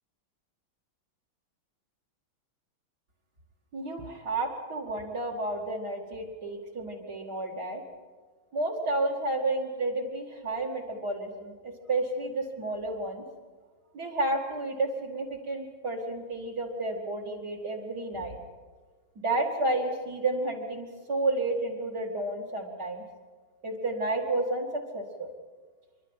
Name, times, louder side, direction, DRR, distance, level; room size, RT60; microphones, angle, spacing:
voice 1, 3.7-7.8 8.5-13.2 13.9-18.4 19.2-23.0 23.6-25.3, right 2 dB, 50° right, 1 dB, 2.8 m, -31 dB
27.5 x 12.0 x 9.0 m, 1.5 s
omnidirectional pair, 2.2 m